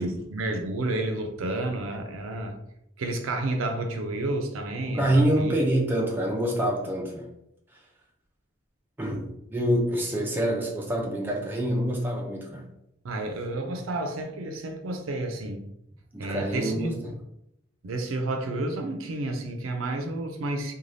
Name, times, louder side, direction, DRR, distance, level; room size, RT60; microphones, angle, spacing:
voice 1, 0.0-2.6 3.0-5.5 13.0-15.7 16.2-16.9 17.8-20.7, right 2 dB, 85° right, 5 dB, 0.5 m, -30 dB
voice 2, 4.9-7.3 9.0-12.7 16.1-17.2, right 1 dB, 10° right, -2 dB, 0.4 m, -26 dB
2.6 x 2.2 x 3.2 m, 0.79 s
head